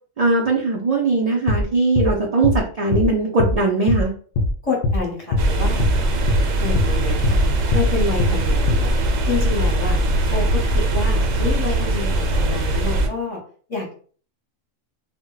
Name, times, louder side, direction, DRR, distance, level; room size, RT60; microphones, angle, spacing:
voice 1, 0.2-4.1, right 3 dB, 60° right, -2 dB, 0.3 m, -20 dB
sound 1, 1.5-1.6 2.0-2.1 2.4-2.6 2.9-3.1 3.4-3.6 3.9-4.0 4.3-4.5 4.8-5.0 5.3-5.5 5.8-6.0 6.3-6.4 6.8-6.9 7.2-7.4 7.7-7.9 8.2-8.4 8.7-8.8, left 2 dB, 70° left, 0.5 m, -20 dB
voice 2, 4.6-5.8 6.6-7.4 7.7-9.0 9.2-10.0 10.3-13.4 13.7-13.9, left 4 dB, 30° left, -2 dB, 0.8 m, -28 dB
sound 2, 5.4-13.1, right 1 dB, 80° right, 1.0 m, -20 dB
2.2 x 2.1 x 3.8 m, 0.43 s
omnidirectional pair, 1.3 m